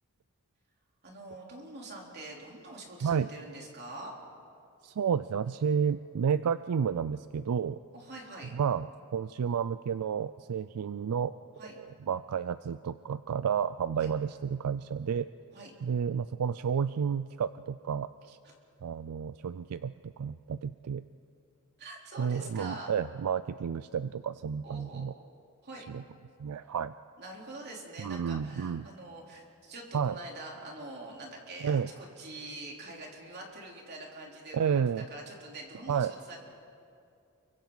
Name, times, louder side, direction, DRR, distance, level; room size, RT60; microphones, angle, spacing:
voice 1, 1.0-4.1 7.9-8.5 11.6-11.8 14.0-14.1 15.5-15.7 18.4-18.5 21.8-22.9 24.6-25.1 25.6-25.9 27.2-34.8 35.1-36.4, right 2 dB, 50° right, -1 dB, 3.6 m, -45 dB
voice 2, 4.8-7.8 8.5-11.3 11.7-15.3 15.8-18.4 18.8-21.0 22.2-25.1 25.9-26.0 26.4-26.9 28.0-28.9 29.9-30.2 31.6-31.9 34.5-35.0 35.9-36.1, right 7 dB, 80° right, 14 dB, 0.4 m, -31 dB
29.0 x 24.0 x 4.0 m, 2.5 s
head